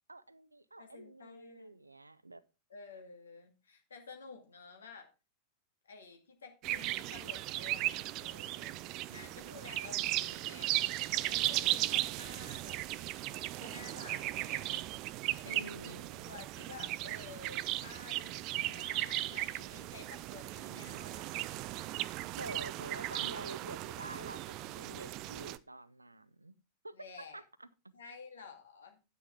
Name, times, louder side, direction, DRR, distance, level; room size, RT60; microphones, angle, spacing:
voice 1, 0.1-2.4 15.4-16.4 22.3-26.5 26.8-27.9, right 2 dB, 85° right, 0.6 m, -48 dB
voice 2, 0.8-1.8 2.7-5.1 5.8-8.8 9.1-10.8 11.3-14.7 15.4-15.9 16.2-21.3 26.9-27.4 27.9-29.0, left 5 dB, 70° left, 2.1 m, -52 dB
sound 1, 6.6-25.6, right 16 dB, 40° right, 0.4 m, -37 dB
9.6 x 9.2 x 3.5 m
figure-of-eight pair, 90°, 0 cm